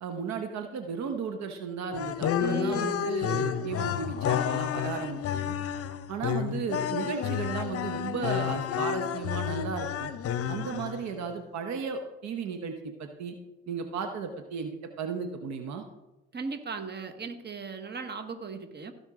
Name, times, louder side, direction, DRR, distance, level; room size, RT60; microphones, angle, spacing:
voice 1, 0.0-5.5 6.1-10.1 10.5-12.7 13.0-13.4 13.7-15.8, right 5 dB, 70° right, 6 dB, 1.0 m, -35 dB
sound 1, 1.9-11.2, left 9 dB, 50° left, 0.7 m, -30 dB
voice 2, 2.4-3.1 16.3-18.9, right 5 dB, 35° right, 8 dB, 1.3 m, -37 dB
16.0 x 5.5 x 3.7 m, 1.0 s
supercardioid pair, 60°, 29 cm